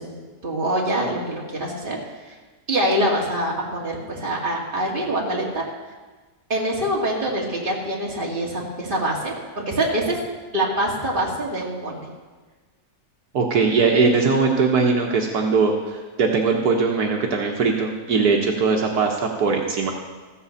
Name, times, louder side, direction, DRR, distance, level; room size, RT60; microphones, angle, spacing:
voice 1, 0.0-2.0 2.3-2.4 2.7-5.6 6.5-10.2 10.5-12.1, right 1 dB, 35° right, -3 dB, 2.5 m, -25 dB
voice 2, 13.3-19.9, right 4 dB, 75° right, 1 dB, 1.7 m, -20 dB
14.5 x 7.9 x 7.1 m, 1.3 s
omnidirectional pair, 1.7 m